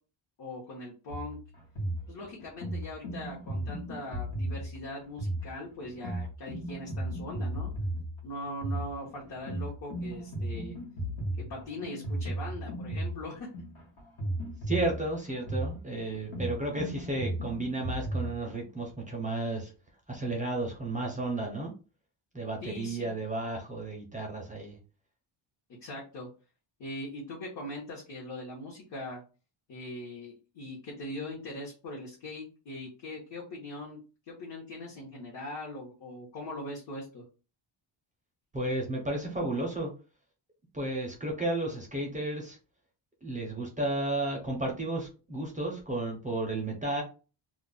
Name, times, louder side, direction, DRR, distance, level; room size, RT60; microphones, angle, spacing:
voice 1, 0.4-1.4 2.1-7.7 8.2-10.8 11.4-13.5 22.6-23.1 25.8-26.3 26.8-29.2 29.7-34.0 34.3-37.2, left 1 dB, 55° left, -3 dB, 0.9 m, -41 dB
sound 1, 1.1-18.3, right 1 dB, 75° left, 1.1 m, -35 dB
voice 2, 14.7-19.7 20.1-21.7 22.3-24.8 38.5-39.9 40.7-42.6 43.2-47.0, right 2 dB, 15° right, 0 dB, 0.4 m, -33 dB
2.3 x 2.0 x 3.7 m, 0.34 s
wide cardioid pair, 150°, 48 cm